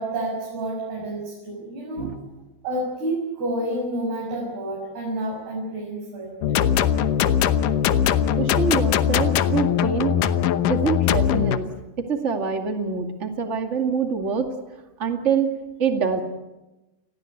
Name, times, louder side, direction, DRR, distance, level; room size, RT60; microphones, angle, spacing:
voice 1, 0.0-2.1 2.6-6.4, right 1 dB, 55° right, -2 dB, 8.1 m, -29 dB
sound 1, 6.4-11.6, left 9 dB, 90° left, 1.8 m, -21 dB
voice 2, 8.4-10.2 10.7-11.7 12.0-14.5 15.0-15.5 15.8-16.2, right 5 dB, 35° right, 5 dB, 1.1 m, -25 dB
29.5 x 21.0 x 8.1 m, 1.1 s
omnidirectional pair, 5.2 m